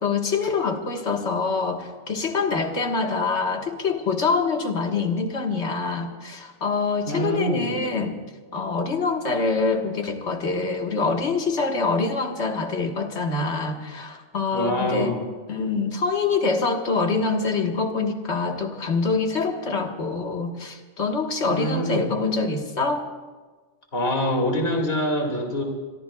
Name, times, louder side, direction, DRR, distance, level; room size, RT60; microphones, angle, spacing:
voice 1, 0.0-8.2 8.5-15.1 15.5-23.1, left 4 dB, 70° left, 3 dB, 1.8 m, -25 dB
voice 2, 7.1-7.8 14.5-15.3 21.5-22.1 23.9-25.6, left 1 dB, 55° left, 1 dB, 2.5 m, -25 dB
25.5 x 22.5 x 2.3 m, 1.3 s
omnidirectional pair, 1.2 m